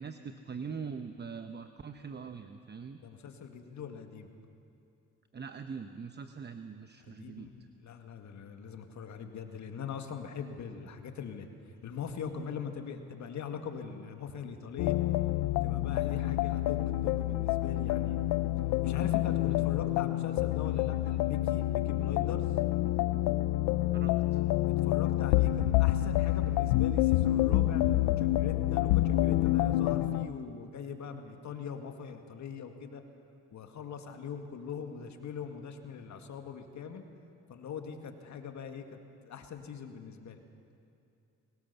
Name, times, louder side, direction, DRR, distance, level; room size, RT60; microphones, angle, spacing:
voice 1, 0.0-3.0 5.3-7.5 23.9-24.4, right 5 dB, 35° right, 8 dB, 0.9 m, -42 dB
voice 2, 3.0-4.3 7.0-11.5 11.8-15.0 15.6-18.2 18.8-22.4 24.8-33.0 33.5-37.0 37.5-40.4, left 7 dB, 60° left, 6 dB, 2.1 m, -41 dB
sound 1, 14.8-30.3, left 15 dB, 90° left, 0.6 m, -28 dB
23.5 x 19.0 x 7.0 m, 2.6 s
supercardioid pair, 70°, 31 cm